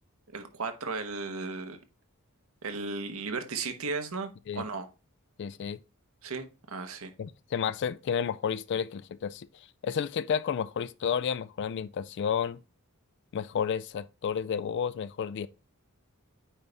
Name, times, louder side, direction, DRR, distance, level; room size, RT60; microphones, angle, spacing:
voice 1, 0.3-1.8 2.6-4.9 6.2-7.1, right 4 dB, 70° right, 1.1 m, -35 dB
voice 2, 5.4-5.8 7.2-9.5 9.8-12.6 13.3-15.5, left 7 dB, 55° left, 0.3 m, -31 dB
9.0 x 3.4 x 3.9 m
head